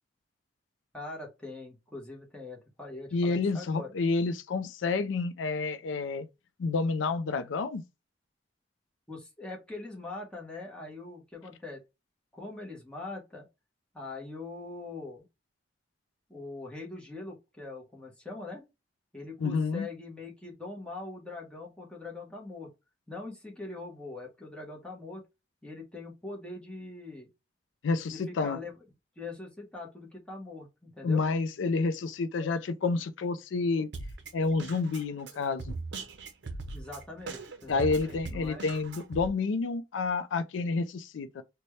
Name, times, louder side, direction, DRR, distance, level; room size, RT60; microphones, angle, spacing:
voice 1, 0.9-3.9 9.1-11.8 12.3-13.5 13.9-15.2 16.3-18.6 19.1-22.7 23.1-25.2 25.6-27.3 28.1-28.7 29.2-31.2 36.7-38.6, left 3 dB, 5° left, 1.0 m, -42 dB
voice 2, 3.1-6.3 6.6-7.8 19.4-19.9 27.8-28.6 31.0-33.9 34.3-35.8 37.7-41.4, left 4 dB, 90° left, 0.4 m, -29 dB
Drum kit, 33.9-39.3, right 3 dB, 70° right, 0.6 m, -40 dB
4.1 x 2.2 x 3.0 m
head